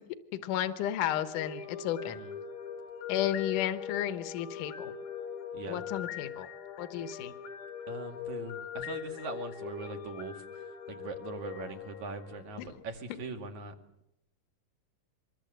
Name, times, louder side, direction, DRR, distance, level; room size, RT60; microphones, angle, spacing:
voice 1, 0.4-2.2 3.1-4.9 5.7-6.5 6.8-7.3 12.6-12.7, left 11 dB, 75° left, 9 dB, 2.6 m, -33 dB
sound 1, 0.7-12.9, left 7 dB, 90° left, 4.1 m, -41 dB
voice 2, 7.9-13.7, right 3 dB, 60° right, 4 dB, 3.7 m, -41 dB
25.5 x 22.0 x 7.9 m, 0.79 s
omnidirectional pair, 3.9 m